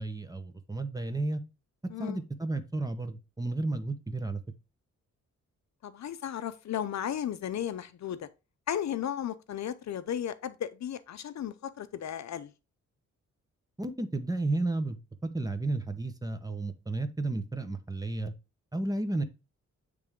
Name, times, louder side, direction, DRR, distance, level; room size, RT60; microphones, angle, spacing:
voice 1, 0.0-1.4 2.0-4.4 13.8-15.0 15.3-18.3 18.7-19.2, right 2 dB, 10° right, 0.8 m, -32 dB
voice 2, 5.8-8.3 8.7-12.5, left 10 dB, 65° left, 0.6 m, -35 dB
8.8 x 3.4 x 3.6 m
wide cardioid pair, 115°, 30 cm